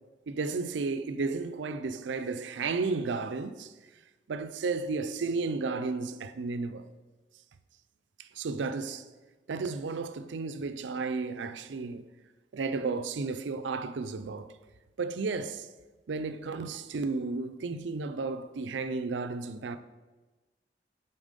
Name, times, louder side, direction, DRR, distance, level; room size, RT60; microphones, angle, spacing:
voice 1, 0.3-3.7 4.3-6.9 8.2-9.1 9.5-12.1 12.5-14.5 15.0-15.7 16.1-19.8, right 4 dB, 85° right, 0.5 m, -33 dB
7.3 x 4.4 x 5.1 m
head